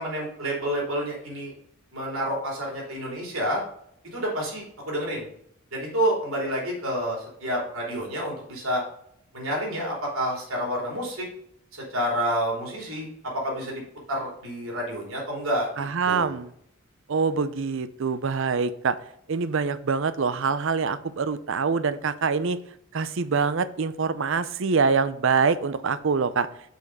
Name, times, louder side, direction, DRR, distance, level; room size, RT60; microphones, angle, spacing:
voice 1, 0.0-1.5 1.9-3.6 4.1-5.3 5.7-8.8 9.3-11.3 11.9-13.1 13.4-13.8 14.1-16.3, equal, 80° right, -2 dB, 3.5 m, -29 dB
voice 2, 15.8-16.5 17.1-19.0 19.3-22.6 22.9-26.5, right 5 dB, 65° right, 14 dB, 0.5 m, -25 dB
6.5 x 5.2 x 5.4 m, 0.70 s
head